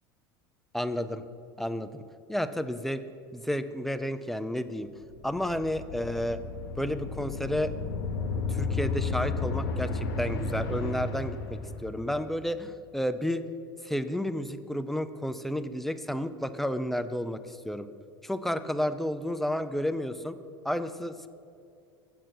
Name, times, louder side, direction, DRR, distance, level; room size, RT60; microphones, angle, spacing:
voice 1, 0.7-1.2 1.6-2.0 2.3-3.0 3.3-4.9 5.2-6.4 6.8-7.7 8.5-13.4 13.8-17.9 18.2-20.4 20.6-21.3, equal, ahead, 11 dB, 0.4 m, -31 dB
sound 1, 5.1-12.1, left 4 dB, 80° left, 0.9 m, -33 dB
7.4 x 6.8 x 6.0 m, 2.4 s
hypercardioid pair, 90°, 12 cm